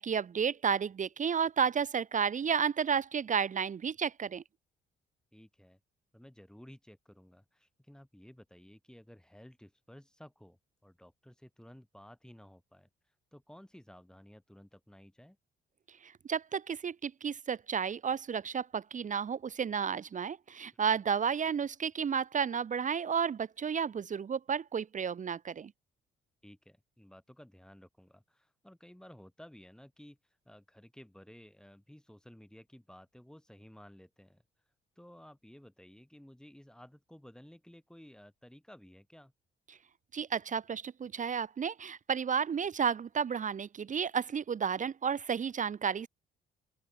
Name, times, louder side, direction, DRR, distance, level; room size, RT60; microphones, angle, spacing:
voice 1, 0.0-4.4 16.0-25.7 40.1-46.1, right 7 dB, 40° right, 0.8 m, -32 dB
voice 2, 5.3-5.8 6.1-15.4 26.4-39.3, equal, 5° left, 6.5 m, -55 dB
open air
cardioid pair, 90°, 20 cm